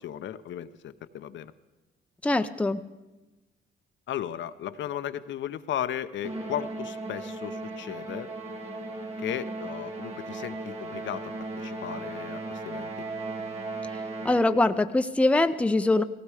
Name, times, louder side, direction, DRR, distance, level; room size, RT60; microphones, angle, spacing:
voice 1, 0.0-1.5 4.1-8.3 9.2-13.1, left 10 dB, 70° left, 11 dB, 0.7 m, -35 dB
voice 2, 2.2-2.9 14.2-16.0, left 2 dB, 5° left, 9 dB, 0.6 m, -23 dB
Musical instrument, 6.2-14.7, right 2 dB, 30° right, 2.5 m, -36 dB
18.0 x 16.5 x 4.9 m, 1.1 s
cardioid pair, 90°, 20 cm